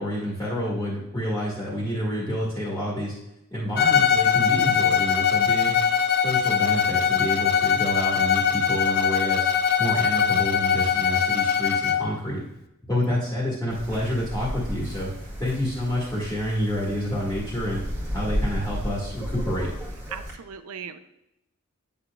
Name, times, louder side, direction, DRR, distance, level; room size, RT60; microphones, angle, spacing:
voice 1, 0.0-3.1 3.5-5.8 6.2-12.4 12.9-15.1 15.4-17.8 18.1-19.7, equal, 10° left, -7 dB, 1.8 m, -28 dB
Bowed string instrument, 3.8-12.1, left 7 dB, 45° left, 0.4 m, -22 dB
Wind, 13.7-20.3, equal, 15° right, 1.9 m, -33 dB
voice 2, 20.1-21.0, right 7 dB, 85° right, 10 dB, 0.5 m, -37 dB
9.6 x 7.0 x 2.4 m, 0.87 s
head